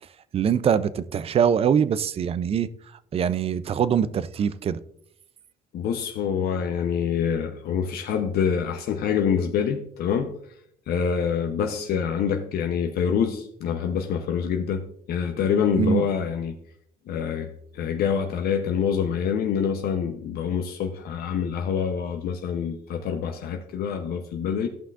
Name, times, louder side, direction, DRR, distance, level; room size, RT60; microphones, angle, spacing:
voice 1, 0.3-2.7 3.1-4.8 15.8-16.1, right 7 dB, 35° right, 0.4 m, -23 dB
voice 2, 5.7-10.3 10.9-16.5 17.1-17.5 17.7-24.7, left 7 dB, 65° left, 0.7 m, -26 dB
14.0 x 5.8 x 2.4 m
cardioid pair, 110°, 17 cm